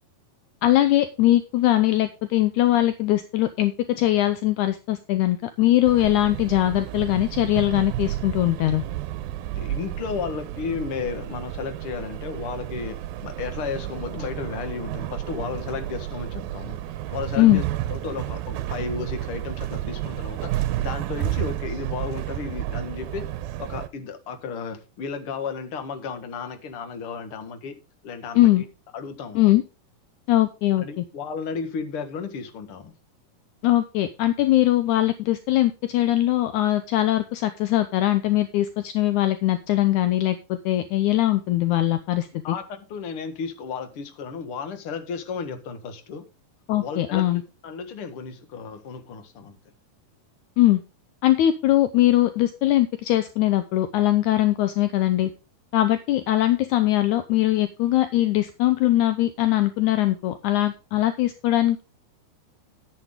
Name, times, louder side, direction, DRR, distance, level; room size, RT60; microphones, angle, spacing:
voice 1, 0.6-8.8 17.4-17.6 28.3-28.6 29.3-29.6 30.3-31.0 33.6-42.3 46.7-47.4 50.6-50.8 51.2-55.3 55.7-61.8, left 14 dB, 80° left, 1.8 m, -21 dB
sound 1, 5.9-23.9, right 13 dB, 85° right, 2.5 m, -31 dB
voice 2, 9.6-16.8 17.1-23.3 23.6-27.8 28.0-28.5 28.9-29.6 30.8-33.0 42.4-46.3 46.8-47.2 47.6-49.6, left 5 dB, 50° left, 1.9 m, -33 dB
11.5 x 9.0 x 3.7 m
omnidirectional pair, 4.2 m